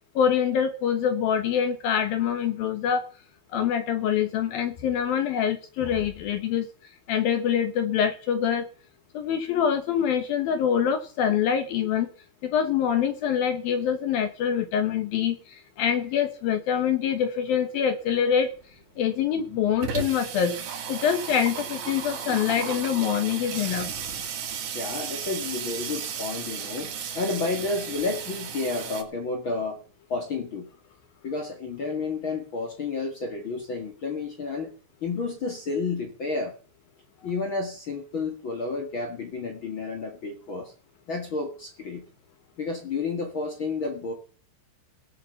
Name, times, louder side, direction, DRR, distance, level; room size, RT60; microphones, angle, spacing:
voice 1, 0.2-3.0 3.5-6.7 7.1-8.7 9.1-12.1 12.4-18.5 19.0-23.9, left 8 dB, 70° left, 8 dB, 2.4 m, -25 dB
Water tap faucet / Sink (filling or washing), 18.4-18.5 18.8-18.9 19.1-29.0, right 7 dB, 65° right, 4.3 m, -35 dB
voice 2, 24.7-29.8 30.1-30.7 31.2-34.7 35.0-36.5 37.2-40.7 41.1-42.0 42.6-44.1, left 3 dB, 55° left, 3 dB, 1.4 m, -31 dB
18.0 x 7.3 x 7.0 m, 0.40 s
omnidirectional pair, 5.7 m